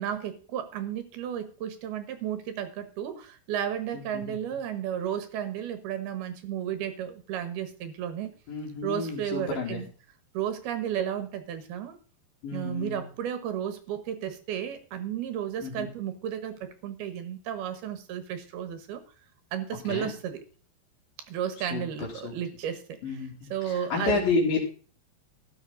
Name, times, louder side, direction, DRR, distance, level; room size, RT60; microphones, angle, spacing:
voice 1, 0.0-8.3 8.8-9.9 10.3-12.0 12.5-19.0 19.5-20.4 21.3-24.3, right 9 dB, 70° right, 10 dB, 2.8 m, -33 dB
voice 2, 3.9-4.4 8.5-9.8 12.4-13.0 15.6-15.9 19.9-20.1 21.7-21.8 22.2-22.3 23.0-24.6, left 3 dB, 55° left, -5 dB, 4.2 m, -30 dB
14.0 x 10.0 x 3.9 m, 0.38 s
omnidirectional pair, 5.3 m